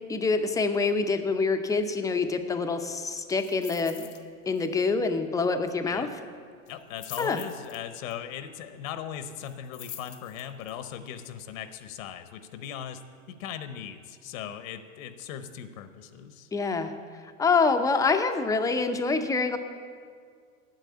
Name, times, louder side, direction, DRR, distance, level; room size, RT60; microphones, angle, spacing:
voice 1, 0.1-4.1 4.5-6.1 7.2-7.4 16.5-16.9 17.2-19.6, left 4 dB, 10° left, 7 dB, 0.5 m, -26 dB
sound 1, 3.4-4.2 4.5-4.8 5.0-5.1 6.7-8.1 9.4-10.7 11.2-11.3, left 11 dB, 90° left, 1.2 m, -44 dB
voice 2, 6.7-13.0 13.3-16.5, left 9 dB, 70° left, 10 dB, 0.9 m, -39 dB
9.1 x 7.5 x 8.4 m, 2.1 s
supercardioid pair, 125°, 42 cm